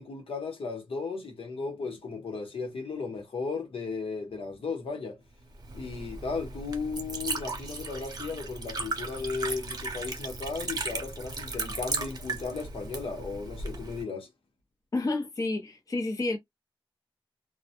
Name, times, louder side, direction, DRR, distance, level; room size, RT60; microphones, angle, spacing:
voice 1, 0.0-5.2 5.7-14.3, left 4 dB, 85° left, 0.9 m, -35 dB
Liquid, 5.5-14.0, right 3 dB, 45° right, 0.7 m, -36 dB
voice 2, 14.9-16.4, left 2 dB, 40° left, 0.6 m, -30 dB
2.2 x 2.1 x 2.7 m
wide cardioid pair, 115°, 9 cm